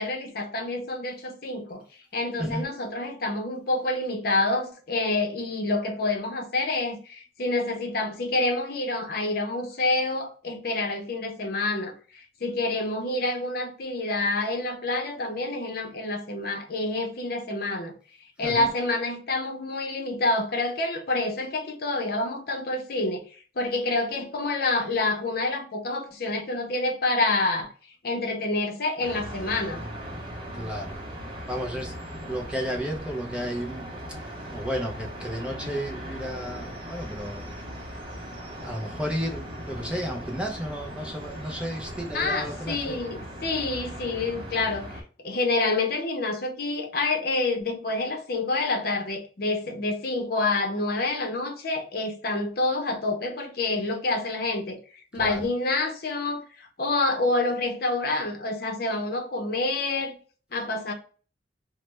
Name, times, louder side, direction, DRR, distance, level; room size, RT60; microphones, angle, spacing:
voice 1, 0.0-1.8 2.1-17.9 18.4-23.2 23.6-27.7 28.0-29.8 42.1-54.8 55.1-60.2 60.5-60.9, left 2 dB, 55° left, 0.7 m, -27 dB
sound 1, 29.0-45.0, equal, 30° right, 0.8 m, -39 dB
voice 2, 30.5-31.0 31.5-32.0 32.3-37.7 38.6-43.0 55.1-55.4, equal, 5° right, 0.5 m, -33 dB
3.1 x 2.1 x 3.2 m
head